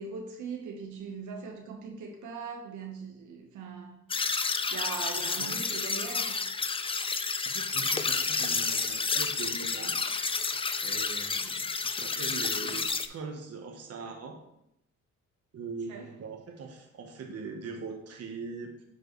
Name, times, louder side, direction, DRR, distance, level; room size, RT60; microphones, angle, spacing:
voice 1, 0.0-4.0 4.7-6.4 15.9-16.1, right 5 dB, 80° right, 3 dB, 1.3 m, -40 dB
sound 1, 4.1-13.1, left 4 dB, 20° left, 0.4 m, -30 dB
voice 2, 5.2-5.8 7.5-9.9 10.8-14.4 15.5-18.9, right 4 dB, 55° right, 3 dB, 1.1 m, -41 dB
9.3 x 4.7 x 3.2 m, 0.81 s
cardioid pair, 90°, 30 cm